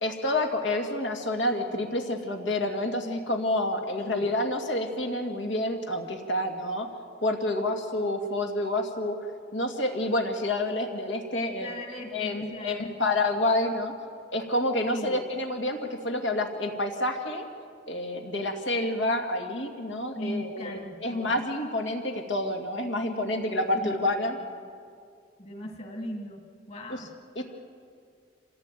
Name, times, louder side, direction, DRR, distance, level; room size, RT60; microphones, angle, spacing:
voice 1, 0.0-6.9 7.2-9.2 9.5-11.8 12.1-13.9 14.3-17.5 17.9-24.4 26.9-27.0 27.4-27.5, left 1 dB, 80° left, 2 dB, 2.3 m, -28 dB
voice 2, 11.6-12.9 14.9-15.3 20.2-21.4 23.7-23.9 24.4-24.5 25.4-27.4, left 1 dB, 35° left, 2 dB, 2.2 m, -38 dB
26.5 x 16.5 x 9.1 m, 2.3 s
head